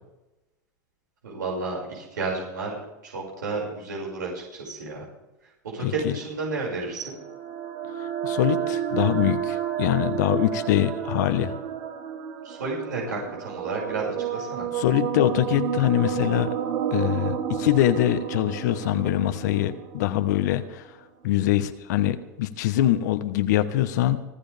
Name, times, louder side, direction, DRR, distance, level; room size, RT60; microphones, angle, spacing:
voice 1, 1.2-5.0 5.6-7.1 12.4-14.7, right 3 dB, 85° right, -3 dB, 6.3 m, -31 dB
voice 2, 5.8-6.1 8.2-11.5 14.7-16.5 16.9-20.9 21.2-24.2, left 13 dB, 70° left, 9 dB, 1.4 m, -23 dB
sound 1, 6.7-20.8, right 8 dB, 65° right, 1.9 m, -31 dB
25.5 x 14.0 x 3.6 m, 0.99 s
hypercardioid pair, 105°, 10 cm